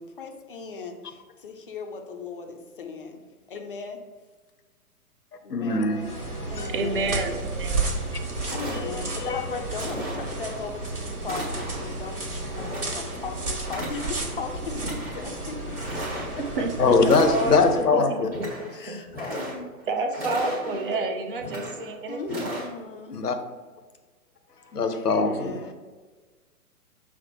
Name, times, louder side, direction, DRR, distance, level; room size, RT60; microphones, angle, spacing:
voice 1, 0.0-3.2 3.5-4.0 5.4-6.2 6.5-7.3 8.5-12.3 12.6-16.2 16.5-16.6 17.0-17.6 18.7-20.0 20.4-21.0 22.1-23.2 24.9-25.7, left 4 dB, 40° left, 3 dB, 0.4 m, -37 dB
voice 2, 5.5-6.7 8.8-9.5 16.8-18.3 23.1-23.4 24.7-25.6, left 4 dB, 85° left, 7 dB, 0.7 m, -23 dB
sound 1, 5.9-17.9, right 2 dB, 75° right, 1.2 m, -32 dB
voice 3, 6.7-7.9 16.6-17.6 17.9-19.0 19.9-22.5, right 3 dB, 35° right, 4 dB, 0.5 m, -29 dB
sound 2, 8.0-8.1 8.4-9.3 9.8-10.6 11.2-12.0 12.5-13.3 13.6-14.4 14.7-15.3 15.8-16.6 17.0-17.8 18.2-18.8 19.1-19.8 20.1-21.0 21.4-21.9 22.3-22.7, right 1 dB, 20° right, 1.1 m, -36 dB
5.9 x 2.0 x 3.0 m, 1.4 s
figure-of-eight pair, 120°, 45 cm